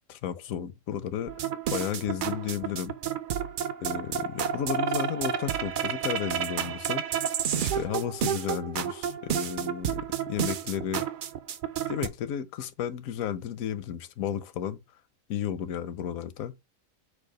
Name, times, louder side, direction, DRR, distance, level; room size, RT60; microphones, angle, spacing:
voice 1, 0.1-1.4 1.7-2.9 3.8-7.1 7.5-11.1 11.9-14.8 15.3-16.5, left 9 dB, 85° left, 1.0 m, -33 dB
sound 1, 1.3-12.1, right 8 dB, 80° right, 0.4 m, -31 dB
4.7 x 2.3 x 4.8 m
omnidirectional pair, 1.4 m